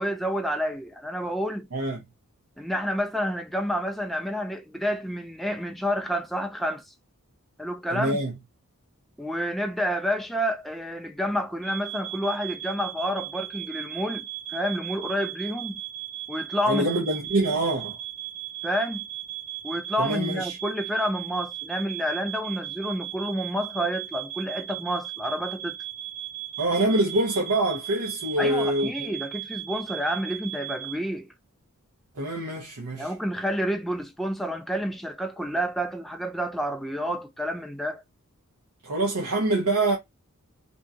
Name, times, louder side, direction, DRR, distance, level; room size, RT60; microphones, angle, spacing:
voice 1, 0.0-1.7 2.6-6.8 7.6-8.2 9.2-15.8 16.3-16.9 18.6-19.1 19.6-25.8 28.4-31.3 33.0-38.0, equal, ahead, 0.4 m, -29 dB
voice 2, 1.7-2.0 7.9-8.3 16.7-18.0 20.0-20.6 26.6-29.1 32.1-33.1 38.8-40.0, right 1 dB, 75° right, 0.8 m, -25 dB
sound 1, 11.6-30.9, right 14 dB, 25° right, 1.1 m, -37 dB
2.7 x 2.7 x 2.2 m
head